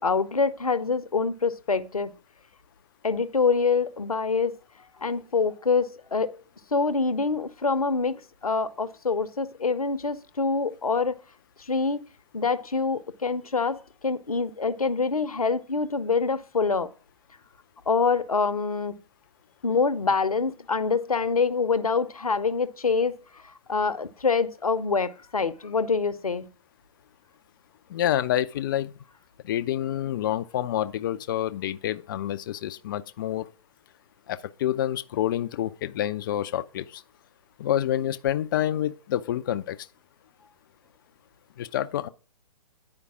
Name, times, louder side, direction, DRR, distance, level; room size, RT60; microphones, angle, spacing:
voice 1, 0.0-2.1 3.0-4.5 5.0-6.4 6.7-11.2 11.7-12.0 12.3-16.9 17.9-19.0 19.6-23.2 23.7-26.5, left 4 dB, 80° left, 0.8 m, -25 dB
voice 2, 27.9-28.9 29.4-33.5 34.3-37.0 37.6-39.8 41.6-42.1, left 12 dB, 35° left, 0.5 m, -28 dB
9.7 x 5.1 x 4.8 m
figure-of-eight pair, 125°, 18 cm